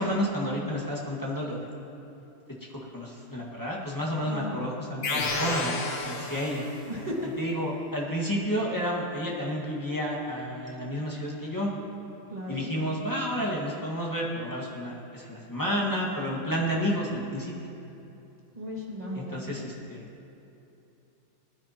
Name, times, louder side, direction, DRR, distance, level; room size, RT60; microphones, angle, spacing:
voice 1, 0.0-1.6 2.9-6.7 7.4-11.7 12.5-17.5 19.1-20.1, equal, 10° left, -4 dB, 1.4 m, -31 dB
voice 2, 4.2-4.7 6.9-7.2 12.3-12.7 18.5-19.6, equal, 20° right, -4 dB, 2.0 m, -36 dB
sound 1, 5.0-6.9, left 2 dB, 45° left, 0.8 m, -31 dB
20.0 x 9.9 x 2.9 m, 2.8 s
omnidirectional pair, 2.2 m